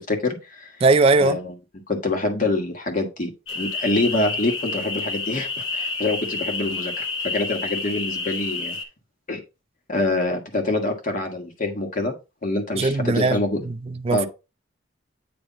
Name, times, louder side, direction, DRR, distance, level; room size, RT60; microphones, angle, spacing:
voice 1, 0.0-0.7 1.2-1.5 1.9-8.8 9.3-9.4 9.9-12.1 12.4-13.6 14.1-14.3, left 2 dB, 45° left, 1.6 m, -25 dB
voice 2, 0.8-1.4 12.8-13.4 14.0-14.3, right 3 dB, 30° right, 0.4 m, -18 dB
sound 1, 3.5-8.8, left 3 dB, 80° left, 1.2 m, -29 dB
8.8 x 3.4 x 4.0 m
head